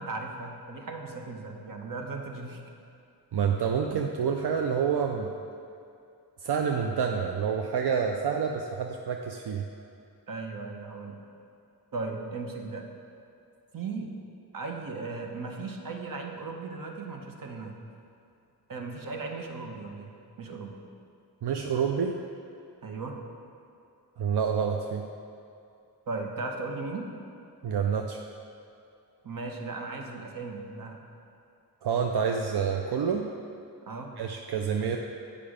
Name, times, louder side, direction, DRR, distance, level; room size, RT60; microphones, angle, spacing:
voice 1, 0.0-2.6 10.3-11.2 11.9-12.8 13.7-14.1 14.5-17.8 18.7-20.8 22.8-23.2 26.1-27.1 29.2-31.0 33.9-34.2, right 3 dB, 55° right, 2 dB, 0.9 m, -37 dB
voice 2, 3.3-5.3 6.4-9.7 21.4-22.2 24.2-25.1 27.6-28.2 31.8-33.3 34.2-35.0, right 6 dB, 80° right, 2 dB, 0.5 m, -28 dB
8.8 x 5.1 x 5.0 m, 2.6 s
wide cardioid pair, 100°, 39 cm